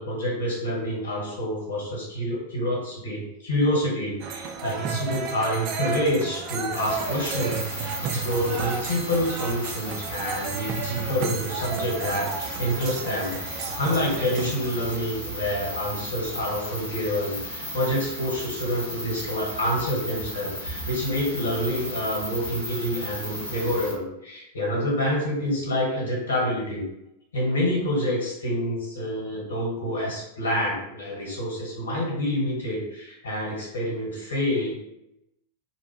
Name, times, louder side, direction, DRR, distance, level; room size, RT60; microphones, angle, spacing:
voice 1, 0.0-26.9 27.3-34.9, equal, 70° left, -3 dB, 1.2 m, -27 dB
sound 1, 4.2-15.0, right 5 dB, 40° right, 0.3 m, -33 dB
sound 2, 6.7-23.9, equal, 90° right, 1.0 m, -35 dB
2.9 x 2.1 x 3.2 m, 0.85 s
figure-of-eight pair, 90°, 0 cm